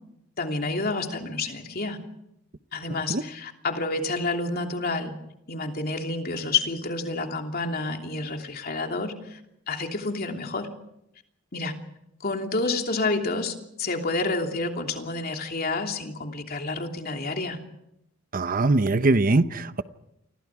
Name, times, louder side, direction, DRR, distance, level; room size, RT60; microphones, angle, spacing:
voice 1, 0.4-2.0 2.7-5.1 5.5-9.4 9.7-10.7 11.5-11.7 12.2-17.6, left 3 dB, 45° left, 3.1 m, -29 dB
voice 2, 18.3-19.8, right 2 dB, 45° right, 0.8 m, -22 dB
29.5 x 25.0 x 4.9 m
head